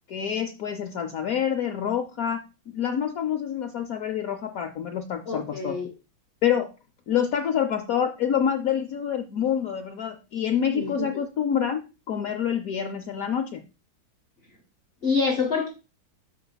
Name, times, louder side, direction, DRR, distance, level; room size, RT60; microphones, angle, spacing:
voice 1, 0.1-2.4 2.7-5.7 6.4-6.7 7.1-13.6, left 8 dB, 75° left, 6 dB, 0.8 m, -27 dB
voice 2, 5.3-5.9 10.7-11.2 15.0-15.7, left 4 dB, 40° left, 2 dB, 0.9 m, -26 dB
13.5 x 4.6 x 2.2 m, 0.30 s
omnidirectional pair, 2.2 m